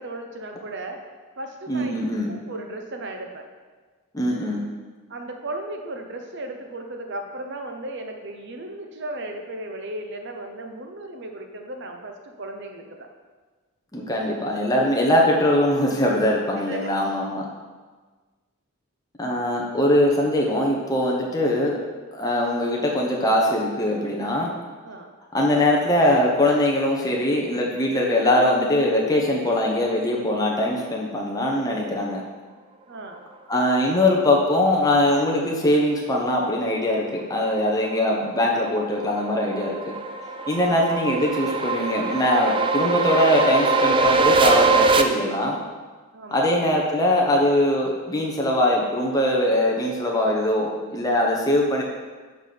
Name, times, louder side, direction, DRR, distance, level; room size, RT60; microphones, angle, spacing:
voice 1, 0.0-1.9 2.3-3.4 5.1-13.1 16.6-16.9 24.8-25.1 32.9-33.2 40.6-40.9 46.1-46.5, right 2 dB, 55° right, 4 dB, 0.9 m, -36 dB
voice 2, 1.7-2.4 4.1-4.7 13.9-17.5 19.2-21.8 22.1-24.5 25.3-32.2 33.5-39.9 40.5-45.6 46.3-51.8, left 1 dB, 15° left, -2 dB, 0.9 m, -22 dB
sound 1, 38.4-45.0, right 3 dB, 20° right, 0.4 m, -22 dB
6.4 x 5.0 x 6.8 m, 1.4 s
head